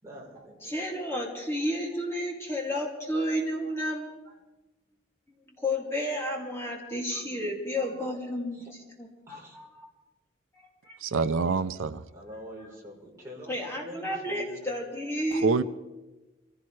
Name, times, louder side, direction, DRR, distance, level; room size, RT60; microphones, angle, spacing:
voice 1, 0.0-0.7 8.5-8.7 9.3-9.6 12.1-13.5 13.8-14.6, equal, 15° right, -4 dB, 3.8 m, -45 dB
voice 2, 0.6-4.3 5.5-8.7 9.0-9.9 10.8-11.0 13.5-15.5, equal, 15° left, -2 dB, 2.4 m, -32 dB
voice 3, 11.0-12.0 15.3-15.6, right 4 dB, 90° right, 13 dB, 0.5 m, -26 dB
24.5 x 16.0 x 3.2 m, 1.1 s
head